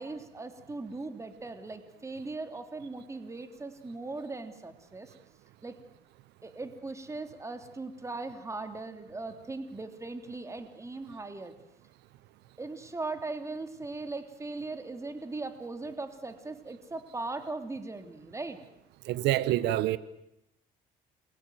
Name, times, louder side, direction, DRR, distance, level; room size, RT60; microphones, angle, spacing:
voice 1, 0.0-5.1 5.6-5.8 6.4-11.5 12.6-18.6, right 3 dB, 15° right, 3.1 m, -39 dB
voice 2, 19.1-20.0, right 14 dB, 85° right, 1.1 m, -26 dB
28.5 x 22.5 x 9.3 m
cardioid pair, 110°, 17 cm